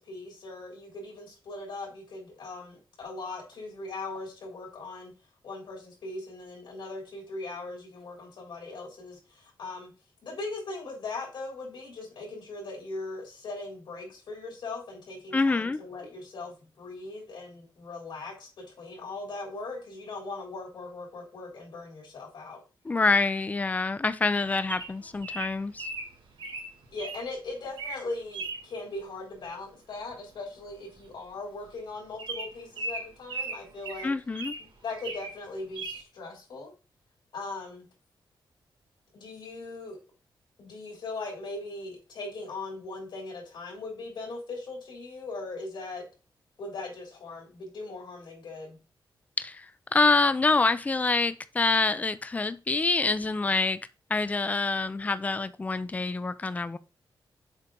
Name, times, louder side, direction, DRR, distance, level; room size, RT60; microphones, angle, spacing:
voice 1, 0.0-5.1 5.4-9.9 10.2-22.6 26.9-34.1 34.8-36.7 37.3-37.9 39.1-40.0 40.6-46.0 46.6-48.8, left 3 dB, 75° left, 3.4 m, -39 dB
voice 2, 15.3-15.8 22.8-25.9 34.0-34.5 49.4-49.7 49.9-53.8 54.1-56.8, left 3 dB, 20° left, 0.4 m, -26 dB
Bird vocalization bird call bird song, 24.7-27.2 27.7-28.0 28.3-28.6 30.1-30.3 30.6-30.7 31.0-31.1 31.6-31.7 32.2-34.6 35.0-35.4 35.8-36.0, right 3 dB, 90° right, 1.9 m, -37 dB
7.2 x 4.4 x 3.8 m
wide cardioid pair, 150°, 8 cm